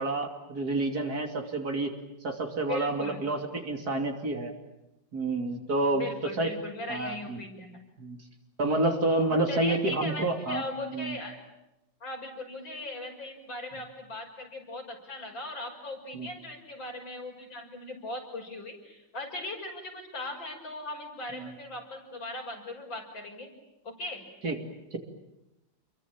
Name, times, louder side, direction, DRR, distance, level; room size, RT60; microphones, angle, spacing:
voice 1, 0.0-1.9 2.2-4.5 5.1-6.5 6.9-7.4 8.0-8.2 8.6-10.6 10.9-11.2 16.1-16.3 21.3-21.5 24.4-24.6 24.9-25.0, right 2 dB, 50° right, 4 dB, 3.3 m, -29 dB
voice 2, 2.7-3.2 5.9-7.8 9.5-11.4 12.0-23.5 23.8-24.2, left 2 dB, 75° left, 1 dB, 6.8 m, -39 dB
28.5 x 23.0 x 8.8 m, 0.90 s
omnidirectional pair, 2.1 m